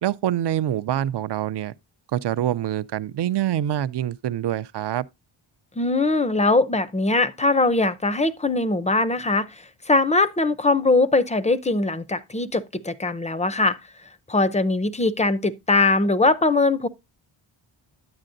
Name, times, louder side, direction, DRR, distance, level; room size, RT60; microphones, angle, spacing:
voice 1, 0.0-1.7 2.1-5.1, right 11 dB, 60° right, 0.5 m, -25 dB
voice 2, 5.8-9.5 9.9-13.8 14.3-16.9, left 2 dB, 15° left, 0.5 m, -21 dB
9.7 x 8.8 x 2.5 m
wide cardioid pair, 125°, 49 cm